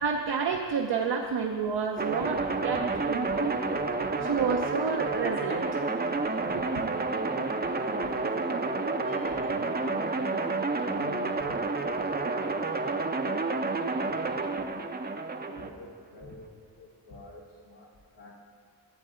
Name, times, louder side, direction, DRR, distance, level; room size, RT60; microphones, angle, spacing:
voice 1, 0.0-3.5 4.2-5.7 6.5-6.6, right 6 dB, 65° right, 1 dB, 0.8 m, -30 dB
sound 1, 2.0-15.7, right 3 dB, 20° right, 0.6 m, -30 dB
voice 2, 2.3-2.8 3.3-3.4 3.7-4.1 4.4-4.5 6.4-6.5 8.9-10.3 10.6-11.6 11.9-13.8 14.1-14.8 15.5-16.5 16.8-17.9 18.1-18.4, left 1 dB, 80° left, -5 dB, 1.4 m, -48 dB
sound 2, 5.5-11.6, left 6 dB, 65° left, 1.0 m, -48 dB
13.5 x 7.7 x 3.8 m, 2.3 s
cardioid pair, 50°, 44 cm